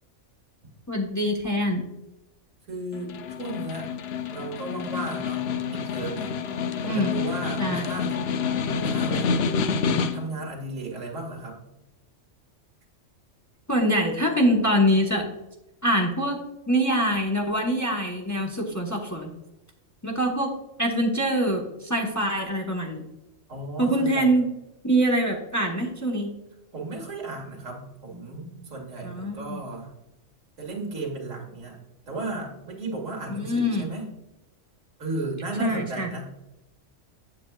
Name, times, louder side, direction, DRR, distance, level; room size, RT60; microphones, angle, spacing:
voice 1, 0.9-1.9 6.8-7.2 7.6-7.9 13.7-15.3 15.8-16.4 16.7-19.3 20.0-20.5 20.8-23.0 23.8-24.5 24.8-26.3 29.0-29.6 33.4-33.9 35.6-36.1, equal, 15° left, 0 dB, 0.9 m, -24 dB
voice 2, 2.7-3.1 3.4-3.9 4.3-6.3 6.8-8.2 8.7-9.4 10.1-11.6 23.5-24.3 26.7-29.9 30.6-31.8 32.1-34.1 35.0-36.3, right 2 dB, 85° right, 0 dB, 2.2 m, -34 dB
Snare drum, 2.9-10.4, left 5 dB, 65° left, 0.7 m, -28 dB
7.8 x 7.8 x 2.3 m, 0.94 s
omnidirectional pair, 1.3 m